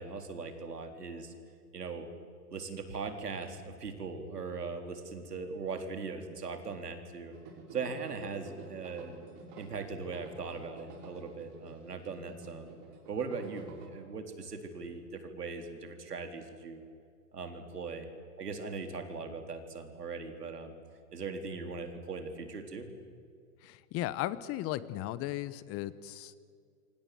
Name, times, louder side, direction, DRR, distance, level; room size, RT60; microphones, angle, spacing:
voice 1, 0.0-1.3 1.7-2.1 2.5-7.3 7.7-9.2 9.6-12.7 13.1-16.8 17.3-18.1 18.4-20.7 21.1-22.9, right 4 dB, 90° right, 6 dB, 4.1 m, -40 dB
sound 1, 7.3-13.9, right 4 dB, 40° right, 6.7 m, -50 dB
voice 2, 23.6-26.4, left 14 dB, 30° left, 17 dB, 1.1 m, -36 dB
27.5 x 25.5 x 7.9 m, 2.2 s
hypercardioid pair, 120°, 46 cm